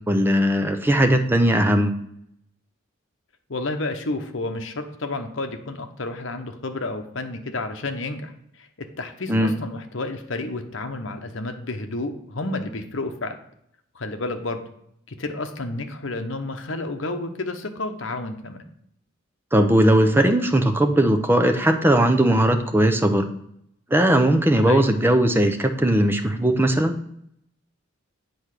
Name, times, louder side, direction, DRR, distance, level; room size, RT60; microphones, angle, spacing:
voice 1, 0.1-1.9 9.3-9.5 19.5-23.3 23.9-27.0, right 1 dB, 10° right, 6 dB, 0.7 m, -18 dB
voice 2, 3.5-8.3 8.6-8.7 9.0-13.3 13.9-14.6 15.2-18.6 24.6-24.9, left 2 dB, 60° left, 6 dB, 1.0 m, -30 dB
8.1 x 4.4 x 6.6 m, 0.72 s
head